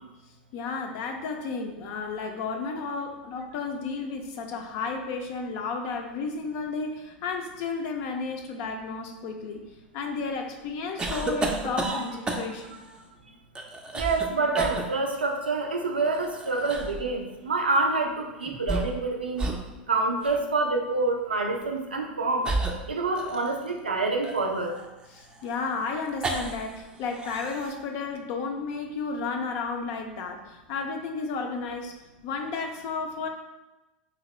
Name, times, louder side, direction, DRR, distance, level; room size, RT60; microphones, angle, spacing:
voice 1, 0.5-9.6 9.9-12.8 25.1-32.0 32.2-33.3, left 4 dB, 55° left, 3 dB, 0.4 m, -32 dB
sound 1, 11.0-12.7 13.5-14.3 14.5-14.9 16.0-17.0 18.5-19.1 19.4-19.6 20.2-20.4 21.5-21.7 22.4-23.7 24.2-26.7 27.0-27.7, right 2 dB, 15° right, 0.4 m, -32 dB
voice 2, 14.0-19.5 19.9-22.5 22.9-24.8, right 3 dB, 90° right, 2 dB, 0.4 m, -27 dB
2.9 x 2.8 x 3.0 m, 1.0 s
hypercardioid pair, 90°, 5 cm